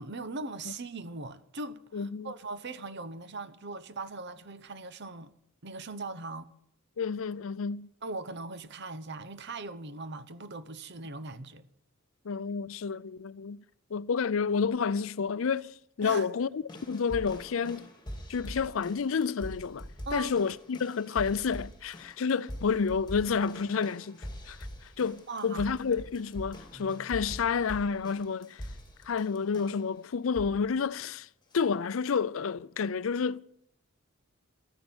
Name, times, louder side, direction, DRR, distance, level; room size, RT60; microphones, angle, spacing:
voice 1, 0.0-5.3 5.6-6.5 8.0-11.7 16.0-16.3 20.1-20.3 25.3-25.6, right 2 dB, 55° right, 0.9 m, -40 dB
voice 2, 1.9-2.3 7.0-7.9 12.2-13.6 13.9-17.9 18.3-19.9 20.1-24.6 25.0-28.7 29.1-31.3 31.5-33.4, left 5 dB, 75° left, 0.5 m, -30 dB
sound 1, 16.7-29.9 30.3-30.7 31.5-31.6, equal, 20° left, 2.2 m, -44 dB
13.5 x 10.5 x 8.8 m
head